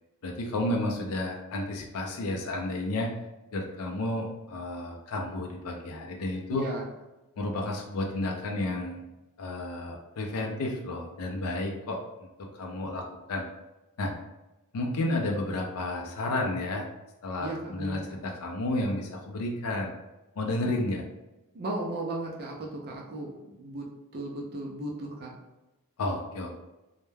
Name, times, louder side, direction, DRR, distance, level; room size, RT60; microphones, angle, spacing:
voice 1, 0.2-3.1 3.5-6.6 7.4-9.0 9.4-12.0 12.4-13.4 14.0-14.1 14.7-16.9 17.2-19.9 20.4-21.0 26.0-26.6, left 2 dB, 70° left, 1 dB, 0.4 m, -31 dB
voice 2, 6.5-6.8 17.4-18.2 21.5-23.8 24.1-25.3, right 1 dB, 45° right, -2 dB, 0.5 m, -36 dB
2.2 x 2.1 x 3.1 m, 1.0 s
head